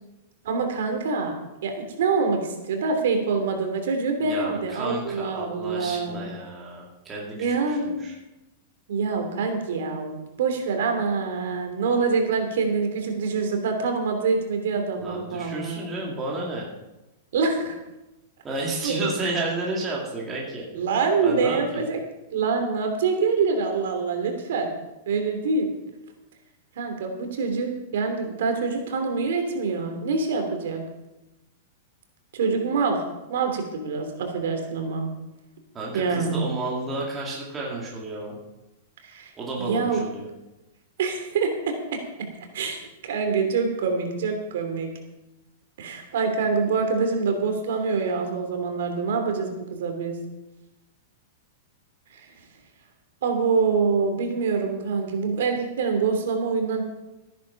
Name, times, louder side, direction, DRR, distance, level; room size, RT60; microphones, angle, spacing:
voice 1, 0.4-1.3 1.6-6.2 7.4-8.1 8.9-15.8 17.3-17.8 18.8-19.1 20.7-22.0 22.3-24.7 25.1-25.7 26.7-30.9 32.3-33.0 33.3-35.1 35.9-36.4 39.0-39.3 39.6-40.0 41.0-41.7 42.2-42.3 42.5-44.9 45.8-50.2 52.1-52.3 53.2-56.8, right 4 dB, 60° right, 4 dB, 2.9 m, -25 dB
voice 2, 4.2-8.1 15.0-16.7 18.4-20.6 21.2-21.8 35.7-38.4 39.4-40.3, right 2 dB, 10° right, -3 dB, 2.3 m, -31 dB
14.0 x 10.5 x 5.8 m, 0.98 s
supercardioid pair, 180°, 0 cm